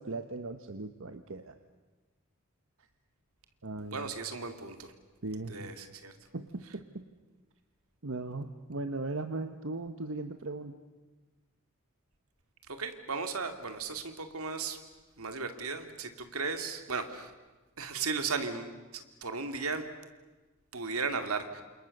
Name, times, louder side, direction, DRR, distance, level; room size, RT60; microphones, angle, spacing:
voice 1, 0.0-1.6 3.6-4.1 5.2-5.7 6.3-7.1 8.0-10.7, right 2 dB, 65° right, 8 dB, 1.1 m, -38 dB
voice 2, 3.9-4.9 5.5-6.1 12.7-14.8 15.2-17.3 17.8-19.9 20.7-21.6, right 4 dB, 85° right, 7 dB, 2.5 m, -36 dB
29.5 x 27.5 x 6.7 m, 1.2 s
head